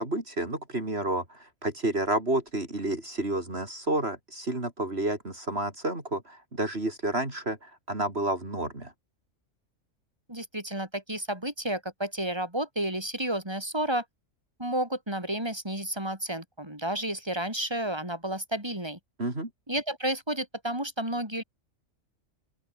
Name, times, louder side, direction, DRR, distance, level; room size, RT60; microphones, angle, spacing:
voice 1, 0.0-8.9 19.2-19.5, right 1 dB, 50° right, 5.2 m, -30 dB
voice 2, 10.3-14.0 14.6-19.0 19.7-21.4, right 1 dB, 20° right, 6.8 m, -31 dB
open air
omnidirectional pair, 1.4 m